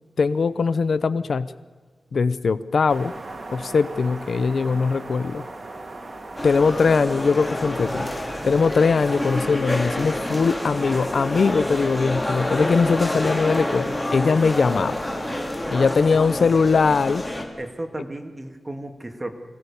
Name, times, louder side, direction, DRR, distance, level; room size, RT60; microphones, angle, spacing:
voice 1, 0.2-1.5 2.1-3.1 3.5-5.4 6.4-8.1 8.4-15.0 15.7-17.2, left 5 dB, 70° left, 15 dB, 0.7 m, -21 dB
sound 1, 2.9-15.4, right 2 dB, 45° right, 2.3 m, -39 dB
sound 2, 6.4-17.4, left 1 dB, 15° left, 3.4 m, -28 dB
voice 2, 15.6-16.5 17.6-19.3, right 1 dB, 25° right, 5 dB, 2.3 m, -34 dB
26.0 x 17.5 x 7.1 m, 1.5 s
wide cardioid pair, 95°, 0 cm